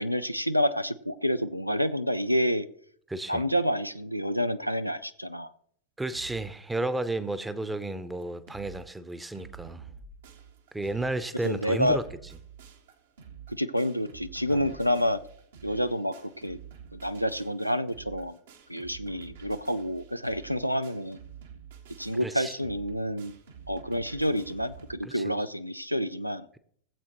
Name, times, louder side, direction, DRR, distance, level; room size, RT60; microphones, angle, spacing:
voice 1, 0.0-2.7 3.3-5.5 11.4-12.0 13.5-15.2 15.6-16.6 16.9-18.4 18.7-21.2 22.0-23.4 23.7-26.5, equal, 90° right, 0.4 m, -28 dB
voice 2, 3.1-3.4 6.0-9.8 10.7-12.0 14.5-14.7 22.2-22.6 25.0-25.2, right 2 dB, 10° right, 0.8 m, -32 dB
sound 1, 6.1-6.6 7.0-7.1 7.3-7.4 7.9-8.0 8.2-8.8 9.1-24.9, right 7 dB, 60° right, 1.4 m, -49 dB
18.5 x 7.7 x 3.0 m
figure-of-eight pair, 90°, 0 cm